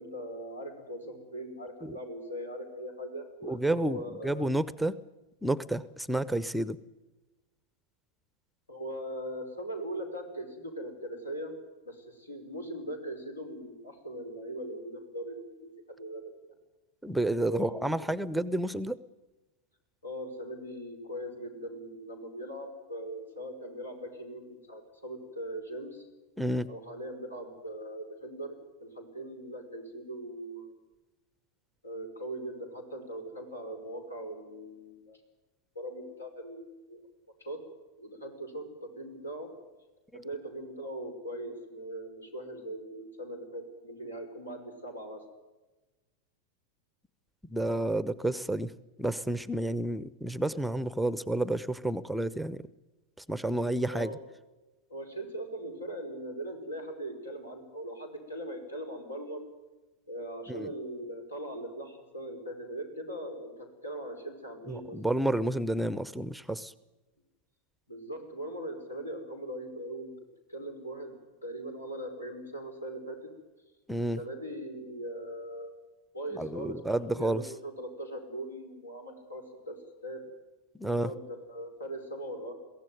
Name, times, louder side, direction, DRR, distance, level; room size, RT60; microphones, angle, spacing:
voice 1, 0.0-4.5 8.7-11.5 11.8-16.5 17.5-18.1 20.0-26.1 26.7-30.7 31.8-35.2 35.8-37.0 37.4-37.6 38.0-39.5 40.1-45.2 53.8-54.2 54.9-59.4 60.1-65.0 67.9-70.1 70.5-73.2 74.2-75.7 76.1-79.8 80.0-80.2 80.9-81.2 81.5-82.5, right 1 dB, 80° left, 4 dB, 5.3 m, -40 dB
voice 2, 3.4-5.0 5.4-6.8 17.0-19.0 26.4-26.7 40.1-40.2 47.5-48.7 49.0-52.6 53.3-54.1 60.5-60.7 64.7-66.7 73.9-74.2 76.4-77.4 80.8-81.1, right 1 dB, ahead, 17 dB, 0.7 m, -30 dB
23.0 x 16.5 x 9.4 m, 1.1 s
figure-of-eight pair, 90°, 0 cm